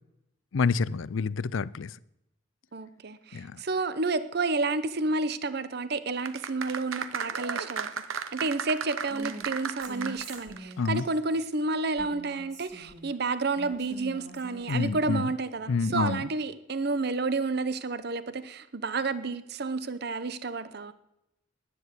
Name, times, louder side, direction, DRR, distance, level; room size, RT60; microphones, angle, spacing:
voice 1, 0.5-1.9 3.3-3.6 10.8-11.1 14.7-15.3 15.7-16.3, left 5 dB, 75° left, 20 dB, 0.5 m, -28 dB
voice 2, 2.7-20.9, right 3 dB, 50° right, 14 dB, 0.8 m, -30 dB
sound 1, 6.2-10.7 11.0-11.1, right 6 dB, 80° right, 0.9 m, -35 dB
Female speech woman speaking, 9.1-9.5 9.8-11.1 12.0-13.1 13.6-15.2, right 1 dB, 35° right, 3.1 m, -44 dB
11.0 x 10.5 x 8.2 m, 0.84 s
head